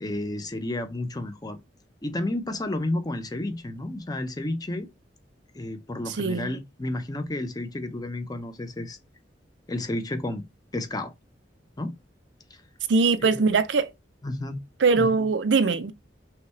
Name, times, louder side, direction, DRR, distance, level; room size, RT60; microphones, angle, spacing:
voice 1, 0.0-1.6 2.0-4.9 5.5-9.0 9.7-10.4 10.7-11.1 11.8-11.9 13.2-13.5 14.2-14.6 14.9-15.3, left 1 dB, 20° left, 0.6 m, -31 dB
voice 2, 6.1-6.5 12.9-13.9 14.8-15.9, right 4 dB, 85° right, 0.5 m, -22 dB
5.7 x 2.3 x 3.2 m
head